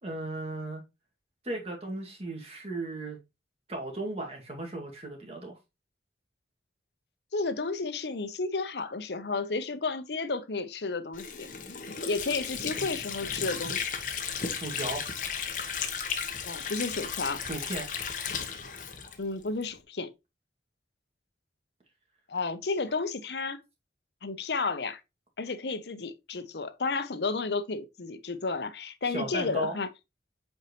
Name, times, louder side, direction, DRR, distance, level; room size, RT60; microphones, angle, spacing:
voice 1, 0.0-0.8 1.4-3.2 3.7-5.6 14.5-15.0 17.4-17.9 29.1-29.8, right 2 dB, 35° right, 2.2 m, -36 dB
voice 2, 7.3-11.5 12.1-13.9 16.4-17.4 19.2-20.1 22.3-23.6 24.2-25.0 25.4-29.9, left 3 dB, 75° left, 0.8 m, -32 dB
Water / Sink (filling or washing), 11.1-19.7, left 6 dB, 45° left, 1.1 m, -35 dB
7.9 x 4.5 x 3.1 m
head